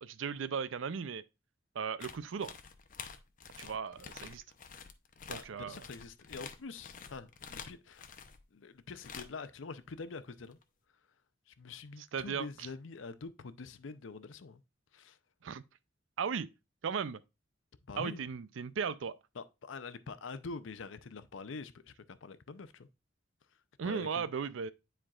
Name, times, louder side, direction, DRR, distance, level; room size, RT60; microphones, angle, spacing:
voice 1, 0.0-1.2 1.7-2.5 3.6-4.4 5.3-5.8 12.0-12.7 15.4-15.6 16.2-16.5 16.8-17.2 18.0-19.2 23.8-24.7, right 6 dB, 85° right, 0.5 m, -36 dB
sound 1, 2.0-8.4 9.0-9.5 10.5-10.6, left 6 dB, 45° left, 0.7 m, -48 dB
voice 2, 5.3-8.1 8.5-10.6 11.5-14.6 14.9-15.2 17.9-18.2 19.4-22.9 23.8-24.3, left 4 dB, 85° left, 0.6 m, -45 dB
9.8 x 4.5 x 2.4 m
head